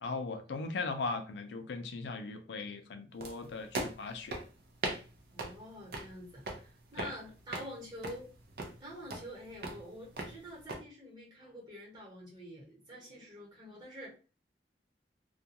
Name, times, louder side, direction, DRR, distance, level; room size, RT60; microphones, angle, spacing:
voice 1, 0.0-4.4 7.0-7.1, left 3 dB, 85° left, 0.4 m, -38 dB
sound 1, 3.2-10.8, right 2 dB, 60° right, 0.6 m, -42 dB
voice 2, 5.3-8.3 8.8-14.1, equal, 25° right, 1.0 m, -47 dB
2.3 x 2.2 x 2.8 m
head